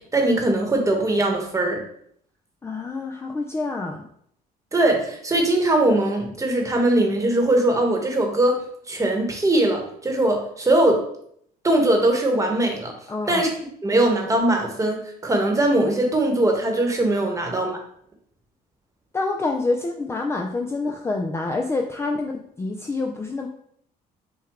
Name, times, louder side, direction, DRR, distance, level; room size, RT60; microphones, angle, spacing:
voice 1, 0.1-1.8 4.7-8.5 8.9-11.0 11.6-12.9 13.3-13.5 13.8-15.0 15.2-17.8, right 1 dB, 20° right, 2 dB, 1.1 m, -20 dB
voice 2, 2.6-4.1 13.1-13.5 19.1-23.5, left 3 dB, 15° left, 2 dB, 0.4 m, -27 dB
6.1 x 2.2 x 3.5 m, 0.68 s
cardioid pair, 110°, 17 cm